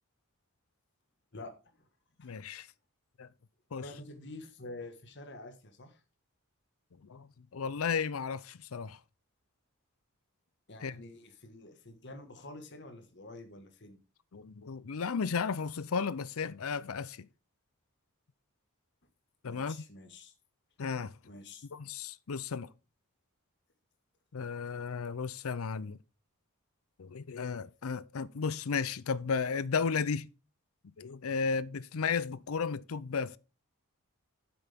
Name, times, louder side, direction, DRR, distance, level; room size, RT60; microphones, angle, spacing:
voice 1, 1.3-1.9 2.2-2.3 3.8-6.0 10.7-14.0 19.5-20.3 21.2-21.7 31.4-31.5, left 2 dB, 50° left, 1.6 m, -48 dB
voice 2, 2.2-2.7 3.2-3.3 3.7-3.8 7.0-9.0 10.8-11.0 14.3-17.2 19.4-19.8 20.8-21.1 21.7-22.7 24.3-26.0 27.0-30.3 31.0-33.4, left 5 dB, 70° left, 0.5 m, -34 dB
9.7 x 7.8 x 3.5 m
head